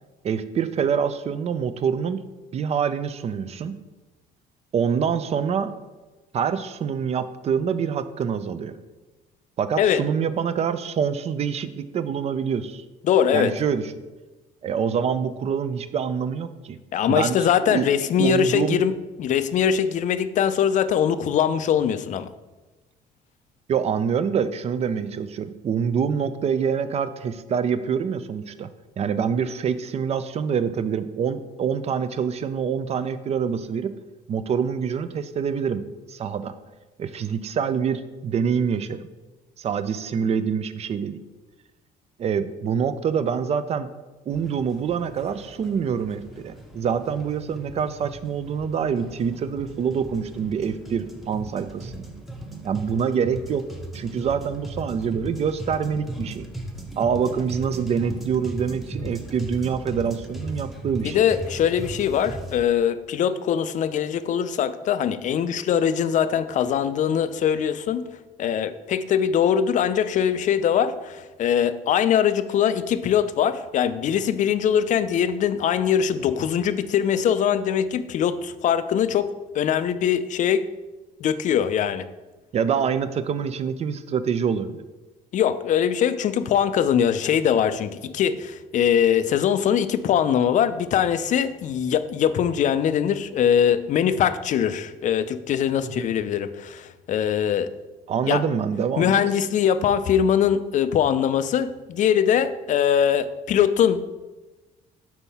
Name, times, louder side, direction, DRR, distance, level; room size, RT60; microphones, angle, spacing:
voice 1, 0.2-2.2 2.5-3.7 4.7-5.7 6.3-8.7 9.6-12.8 13.3-13.8 14.6-16.8 17.1-17.9 18.2-18.8 23.7-28.7 29.0-33.9 34.3-35.8 36.1-36.5 37.0-39.1 39.6-41.2 42.2-43.9 44.3-52.0 52.6-53.6 53.9-56.5 57.0-61.2 82.5-84.8 95.8-96.0 98.1-99.2, right 7 dB, 40° right, 12 dB, 0.4 m, -25 dB
voice 2, 13.0-13.5 16.9-18.9 19.2-22.3 61.0-68.1 68.4-80.6 81.2-82.1 85.3-97.7 98.3-98.4 99.0-104.0, left 8 dB, 50° left, 12 dB, 0.4 m, -22 dB
sound 1, 44.3-62.6, right 1 dB, ahead, 0.8 m, -37 dB
5.4 x 4.6 x 4.1 m, 1.2 s
cardioid pair, 110°, 17 cm